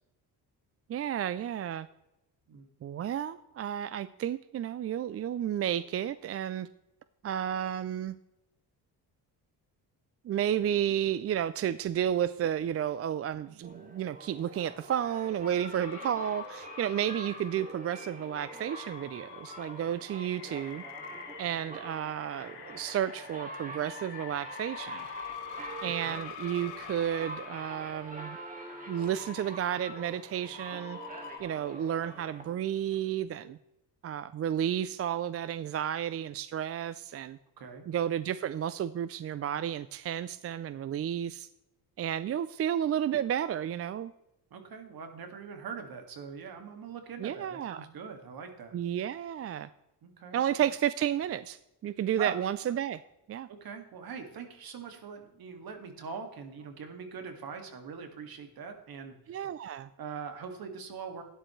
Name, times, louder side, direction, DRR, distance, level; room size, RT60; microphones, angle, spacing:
voice 1, 0.9-1.9 2.8-6.7 7.2-8.2 10.2-20.8 21.4-25.1 25.8-28.4 28.9-31.0 31.4-33.6 34.0-37.4 37.9-41.5 42.0-44.1 47.2-47.9 48.7-49.7 50.3-53.0 53.3-53.5 59.3-59.9, right 10 dB, 40° right, 15 dB, 0.4 m, -32 dB
sound 1, 13.6-33.0, right 1 dB, 20° right, 2.4 m, -45 dB
sound 2, 15.8-31.4, left 10 dB, 85° left, 1.5 m, -47 dB
voice 2, 25.8-26.2 37.6-37.9 44.5-48.8 50.0-50.4 52.2-52.3 53.5-59.4 60.0-61.2, right 6 dB, 60° right, 6 dB, 2.2 m, -42 dB
12.5 x 10.0 x 3.2 m, 0.91 s
cardioid pair, 105°, 40 cm